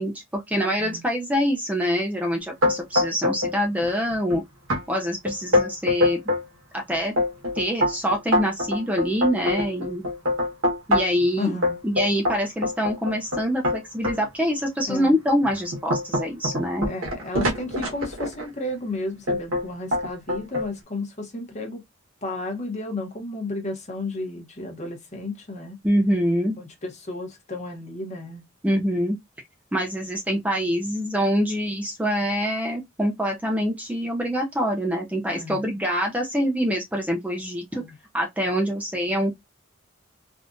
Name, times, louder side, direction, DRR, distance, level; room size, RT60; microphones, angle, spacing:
voice 1, 0.0-4.4 4.9-6.2 6.7-7.1 7.5-10.0 10.9-11.5 11.8-16.9 25.8-26.6 28.6-29.2 29.7-37.8 38.1-39.3, equal, 5° right, 0.5 m, -25 dB
sound 1, 2.6-3.5 3.8-4.3 4.7-4.8 5.3-6.4 6.9-11.2 11.6-14.2 14.8-14.9 15.4-18.5 19.3-19.6 19.9-20.7, left 1 dB, 90° right, 1.4 m, -24 dB
voice 2, 11.4-11.8 14.9-15.1 16.8-21.8 22.2-25.8 26.6-28.5 35.3-35.6 37.7-38.0, left 2 dB, 35° left, 1.0 m, -33 dB
3.5 x 2.4 x 2.5 m
head